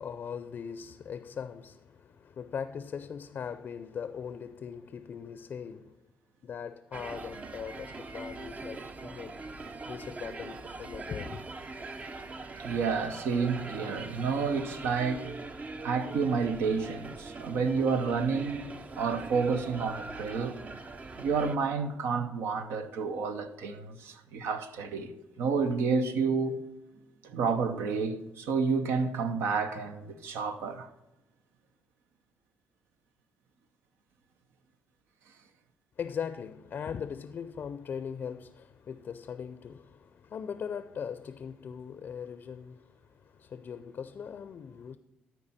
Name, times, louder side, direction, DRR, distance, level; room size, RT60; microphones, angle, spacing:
voice 1, 0.0-6.0 6.4-9.4 9.9-11.4 36.0-45.0, left 7 dB, 50° left, 0.5 m, -40 dB
sound 1, 6.9-21.6, right 3 dB, 35° right, 0.7 m, -42 dB
voice 2, 12.6-15.3 15.8-20.6 21.1-26.6 27.2-30.9, right 5 dB, 80° right, 0.8 m, -30 dB
13.5 x 4.6 x 4.2 m
supercardioid pair, 70°, 4 cm